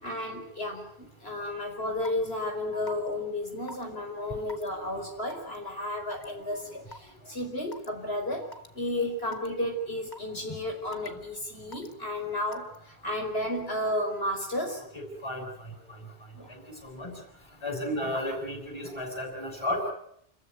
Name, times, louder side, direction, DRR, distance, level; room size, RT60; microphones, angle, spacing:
voice 1, 0.0-8.5 8.7-14.8 16.3-16.5, left 1 dB, 70° left, 2 dB, 5.1 m, -33 dB
Raindrop / Water tap faucet / Drip, 2.1-2.3 2.9-3.1 3.7-3.8 4.5-4.7 5.3-5.6 6.1-6.3 6.9-7.0 7.7-7.9 8.5-8.7 9.3-9.5 10.1-10.4 10.9-11.2 11.7-11.9 12.5-12.8, left 1 dB, 45° left, 1.8 m, -43 dB
voice 2, 6.2-6.7 7.2-7.3 10.5-10.6 11.1-11.2 14.9-16.0 16.5-17.2 17.6-19.9, left 1 dB, 25° left, 2 dB, 7.0 m, -35 dB
29.5 x 14.5 x 9.4 m, 0.71 s
omnidirectional pair, 1.1 m